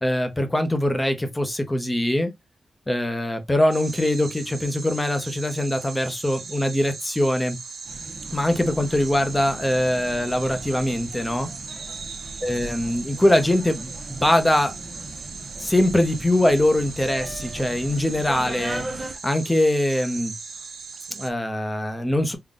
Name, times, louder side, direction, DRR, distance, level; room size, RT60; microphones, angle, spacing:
voice 1, 0.0-2.3 2.9-7.6 8.3-11.5 12.4-14.7 15.6-20.3 21.1-22.4, left 1 dB, 10° left, 0.7 m, -22 dB
sound 1, 3.7-21.3, right 5 dB, 65° right, 0.6 m, -39 dB
sound 2, 7.9-19.1, right 2 dB, 25° right, 0.7 m, -38 dB
3.8 x 2.2 x 3.6 m
wide cardioid pair, 125°, 0 cm